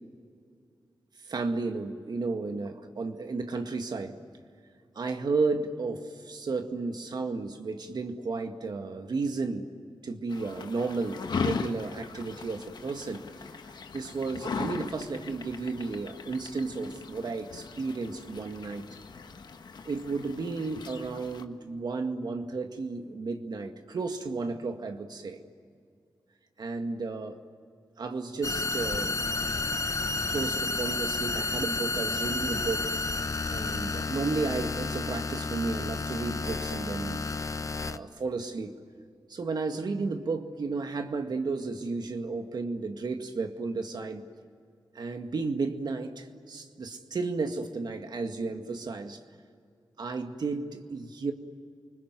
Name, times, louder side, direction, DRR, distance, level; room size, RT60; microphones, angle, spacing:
voice 1, 1.2-4.2 5.0-9.7 10.0-13.3 13.9-18.9 19.8-25.4 26.6-27.4 28.0-29.2 30.3-32.9 33.5-37.5 37.9-38.8 39.3-44.2 45.0-49.2 50.0-51.3, right 3 dB, 70° right, 5 dB, 2.0 m, -33 dB
sound 1, 10.3-21.4, left 5 dB, 75° left, 1.4 m, -38 dB
sound 2, 28.4-38.0, left 3 dB, 45° left, 1.0 m, -31 dB
29.0 x 20.5 x 9.4 m, 2.3 s
cardioid pair, 50°, 7 cm